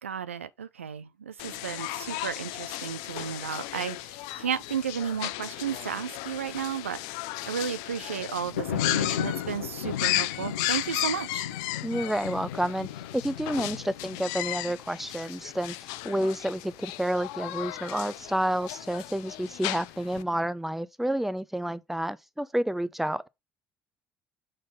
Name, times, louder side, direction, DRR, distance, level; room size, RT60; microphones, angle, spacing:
voice 1, 0.0-7.0 7.4-11.5, right 7 dB, 90° right, 0.4 m, -33 dB
sound 1, 1.4-20.2, left 17 dB, 70° left, 0.5 m, -35 dB
sound 2, 8.2-15.3, left 10 dB, 85° left, 0.9 m, -35 dB
voice 2, 11.8-23.3, right 1 dB, 5° right, 0.6 m, -30 dB
6.4 x 3.8 x 5.3 m
hypercardioid pair, 60°, 7 cm